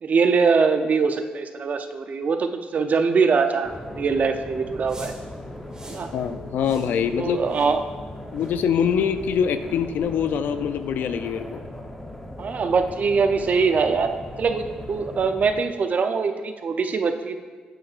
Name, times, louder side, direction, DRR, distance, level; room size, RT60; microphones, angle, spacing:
voice 1, 0.0-5.1 5.8-6.1 7.2-7.8 12.4-14.1 14.4-17.4, right 5 dB, 50° right, 7 dB, 0.7 m, -22 dB
sound 1, 3.6-15.6, left 1 dB, 10° left, 0.9 m, -38 dB
sound 2, 4.9-5.2 5.7-6.1 6.6-6.9 7.5-7.7 8.3-8.6 9.2-9.3 9.9-10.1, right 2 dB, 25° right, 2.0 m, -45 dB
voice 2, 6.1-7.4 8.3-11.6, left 7 dB, 70° left, 10 dB, 0.4 m, -24 dB
8.9 x 7.7 x 2.5 m, 1.5 s
supercardioid pair, 55°, 3 cm